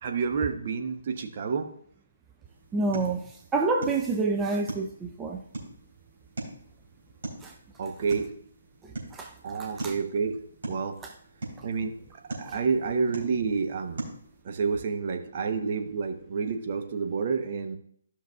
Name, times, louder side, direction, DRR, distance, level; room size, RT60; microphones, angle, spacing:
voice 1, 0.0-1.7 7.8-8.3 9.4-10.4 10.7-11.0 11.6-11.9 12.3-14.0 14.4-17.8, right 5 dB, 40° right, 5 dB, 0.9 m, -29 dB
sound 1, 2.4-14.4, right 2 dB, 60° right, 3.3 m, -42 dB
voice 2, 2.7-3.2 3.5-5.4 7.4-7.5 9.1-9.3 9.8-9.9 12.4-12.5, right 3 dB, 10° right, 1 dB, 0.5 m, -27 dB
14.0 x 5.9 x 2.3 m, 0.63 s
figure-of-eight pair, 140°, 0 cm